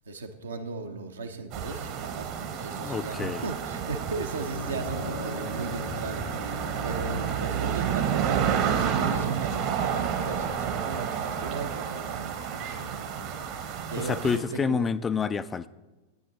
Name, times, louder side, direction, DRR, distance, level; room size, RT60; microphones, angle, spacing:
voice 1, 0.1-14.9, right 3 dB, 70° right, 6 dB, 1.0 m, -37 dB
sound 1, 1.5-14.4, right 8 dB, 45° right, 1.1 m, -30 dB
voice 2, 2.8-3.5 14.0-15.7, left 5 dB, 15° left, 14 dB, 0.3 m, -28 dB
sound 2, 4.5-12.8, left 2 dB, 80° left, 1.6 m, -42 dB
13.5 x 9.2 x 4.1 m, 1.1 s
figure-of-eight pair, 90°, 0 cm